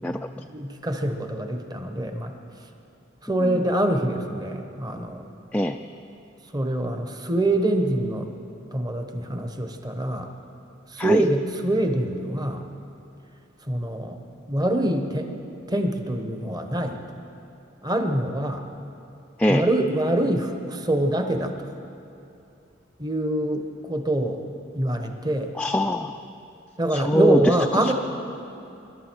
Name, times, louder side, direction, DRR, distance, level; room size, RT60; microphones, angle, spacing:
voice 1, 0.3-2.7 3.2-5.3 6.5-8.3 8.7-10.3 10.9-12.7 13.6-14.2 14.5-15.3 15.7-17.0 17.8-18.7 19.5-21.5 23.0-24.4 24.7-25.5 26.8-27.9, right 1 dB, 20° right, 5 dB, 1.0 m, -25 dB
voice 2, 25.6-26.2 26.9-27.5, equal, 5° left, 4 dB, 0.3 m, -22 dB
25.5 x 12.0 x 4.6 m, 2.6 s
head